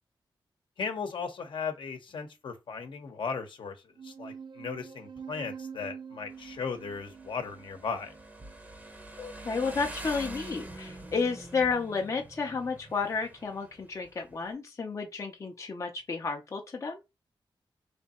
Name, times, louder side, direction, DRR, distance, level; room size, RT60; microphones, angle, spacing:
voice 1, 0.8-3.8 4.0-8.1, left 5 dB, 65° left, 0.9 m, -36 dB
sound 1, 4.0-8.9, right 6 dB, 55° right, 0.5 m, -46 dB
Motorcycle, 6.3-14.5, right 1 dB, 20° right, 0.7 m, -46 dB
voice 2, 9.2-17.0, left 4 dB, 35° left, 0.6 m, -32 dB
3.3 x 2.7 x 4.2 m
wide cardioid pair, 155°, 9 cm